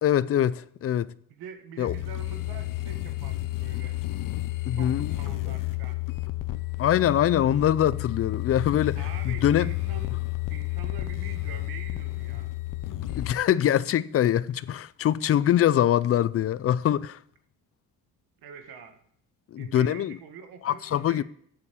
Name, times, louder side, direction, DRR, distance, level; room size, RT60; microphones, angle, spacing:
voice 1, 0.0-1.1 1.8-1.9 4.7-5.2 6.8-9.0 9.2-9.7 13.1-17.2 19.5-20.2 20.6-21.2, left 11 dB, 40° left, 0.5 m, -23 dB
voice 2, 1.3-4.0 4.7-6.0 8.9-12.5 18.4-19.0 19.6-21.2, right 7 dB, 85° right, 1.7 m, -45 dB
sound 1, 1.9-13.4, left 18 dB, 60° left, 0.8 m, -31 dB
8.5 x 7.2 x 8.3 m
cardioid pair, 110°, 36 cm